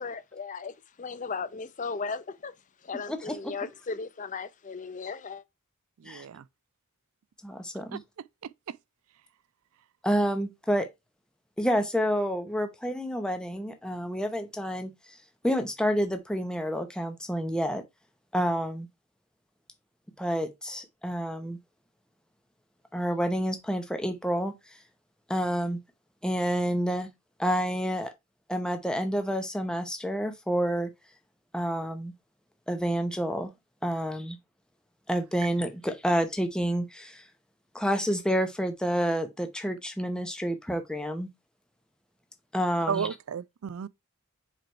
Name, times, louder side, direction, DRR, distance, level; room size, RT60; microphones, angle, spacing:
voice 1, 0.0-2.5 2.8-5.4, left 4 dB, 35° left, 0.5 m, -36 dB
voice 2, 3.1-3.4 6.0-6.2 7.4-8.0 10.0-10.9 11.6-15.2 15.4-17.8 18.3-18.9 20.2-21.6 22.9-24.5 25.3-25.8 26.2-27.1 27.4-28.1 28.5-30.9 31.5-32.1 32.7-33.5 33.8-34.4 35.1-37.2 37.7-41.3 42.5-43.1, equal, 5° left, 0.8 m, -29 dB
voice 3, 6.0-6.4 7.9-8.0 8.4-8.8 42.9-43.9, right 7 dB, 75° right, 0.4 m, -33 dB
4.9 x 4.6 x 4.5 m
head